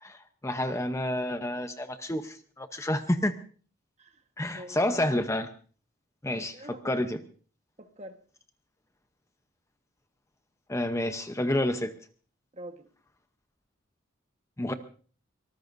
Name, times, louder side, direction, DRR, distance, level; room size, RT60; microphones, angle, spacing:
voice 1, 0.0-3.3 4.4-5.5 6.2-6.5 6.8-7.2 10.7-11.9 14.6-14.7, left 1 dB, 15° left, 8 dB, 0.7 m, -29 dB
voice 2, 4.5-5.0 6.3-6.9 7.8-8.2 12.5-12.9, right 1 dB, 30° right, 7 dB, 1.3 m, -45 dB
24.0 x 18.5 x 2.6 m, 0.41 s
head